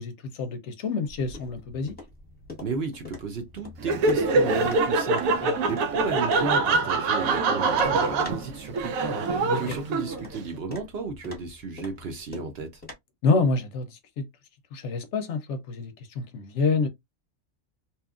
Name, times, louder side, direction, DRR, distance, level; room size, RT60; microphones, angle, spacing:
voice 1, 0.0-1.9 5.4-5.6 9.4-9.8 13.2-14.3 14.7-16.9, left 4 dB, 65° left, 0.8 m, -27 dB
sound 1, 1.1-12.9, left 2 dB, 10° left, 1.0 m, -45 dB
voice 2, 2.6-12.8, right 4 dB, 60° right, 0.8 m, -33 dB
Laughter, 3.8-10.4, right 3 dB, 85° right, 1.0 m, -24 dB
2.9 x 2.4 x 2.3 m
omnidirectional pair, 1.4 m